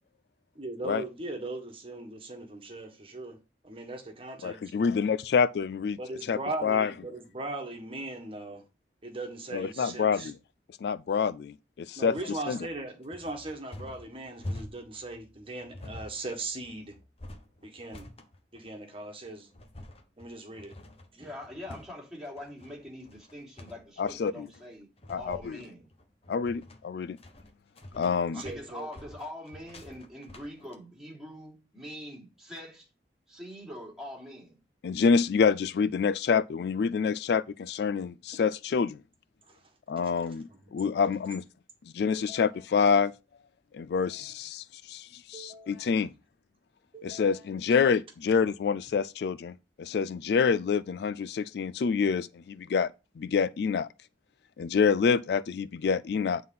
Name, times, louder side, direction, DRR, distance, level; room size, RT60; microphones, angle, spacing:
voice 1, 0.5-3.4 3.6-4.6 6.0-8.6 9.0-10.3 12.0-16.9 17.6-18.1 18.5-19.5 20.2-20.7 21.2-21.3 28.3-28.9 39.5-39.6 40.5-40.7 42.1-42.5 44.1-44.3 45.3-45.9 46.9-47.4, right 2 dB, 30° right, 1.6 m, -39 dB
voice 2, 4.4-6.0 6.3-6.9 9.5-10.3 10.8-12.2 12.5-12.6 24.0-24.5 25.1-25.6 26.3-27.2 27.9-28.4 34.8-39.0 39.9-41.4 41.9-43.1 43.7-46.1 47.0-52.9 53.2-53.9 54.6-56.4, left 6 dB, 65° left, 0.3 m, -27 dB
sound 1, 12.2-30.7, left 1 dB, 35° left, 1.2 m, -46 dB
voice 3, 21.1-24.9 25.1-25.9 28.3-32.9 33.3-34.6, left 1 dB, 5° right, 3.2 m, -43 dB
9.4 x 4.0 x 5.6 m
head